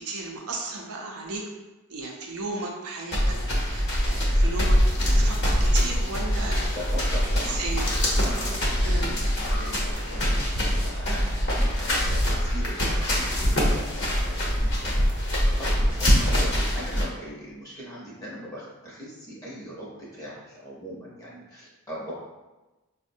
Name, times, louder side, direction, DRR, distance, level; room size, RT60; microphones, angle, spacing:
voice 1, 0.0-1.4 1.9-4.8 5.1-6.7 7.5-7.9 8.8-9.1, right 3 dB, 80° right, 0 dB, 0.5 m, -35 dB
sound 1, 3.1-17.0, equal, 50° left, 0.8 m, -24 dB
voice 2, 6.7-7.6 7.9-22.1, equal, 15° left, -6 dB, 0.7 m, -41 dB
4.9 x 2.0 x 2.6 m, 1.1 s
head